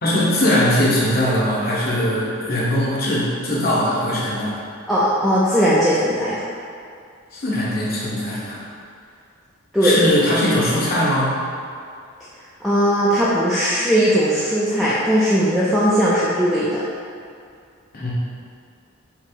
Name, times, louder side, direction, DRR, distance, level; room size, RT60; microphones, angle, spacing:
voice 1, 0.0-4.6 7.3-8.6 9.8-11.4 17.9-18.1, left 1 dB, 45° left, -7 dB, 1.1 m, -20 dB
voice 2, 4.9-6.5 9.7-10.0 12.6-16.8, equal, ahead, -10 dB, 0.4 m, -18 dB
5.7 x 2.0 x 4.5 m, 2.3 s
head